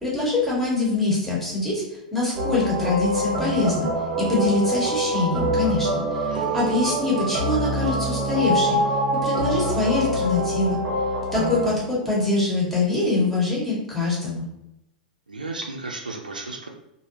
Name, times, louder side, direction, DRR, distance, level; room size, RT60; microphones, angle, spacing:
voice 1, 0.0-3.9 4.2-8.8 9.2-10.8 11.3-14.4, left 3 dB, 5° left, -6 dB, 1.4 m, -24 dB
sound 1, 2.4-11.7, right 1 dB, 35° right, 0.9 m, -25 dB
voice 2, 6.3-6.8 15.3-16.7, right 3 dB, 80° right, 2 dB, 0.4 m, -34 dB
3.2 x 2.6 x 2.7 m, 0.86 s
figure-of-eight pair, 95°, 4 cm